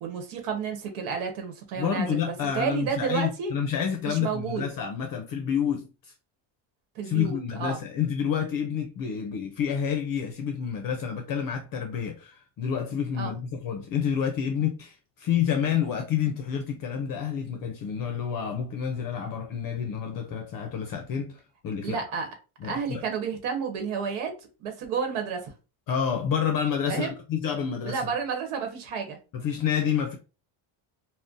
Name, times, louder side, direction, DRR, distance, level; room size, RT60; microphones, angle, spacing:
voice 1, 0.0-3.5 4.0-4.7 6.9-7.8 13.2-13.3 21.8-22.3 22.6-24.3 24.6-25.4 26.9-27.1 27.9-29.2, right 6 dB, 80° right, 1.0 m, -31 dB
voice 2, 1.8-6.1 7.0-22.0 22.6-23.0 25.9-28.1 29.3-30.2, left 8 dB, 45° left, 0.5 m, -29 dB
2.6 x 2.1 x 3.6 m
cardioid pair, 135°, 48 cm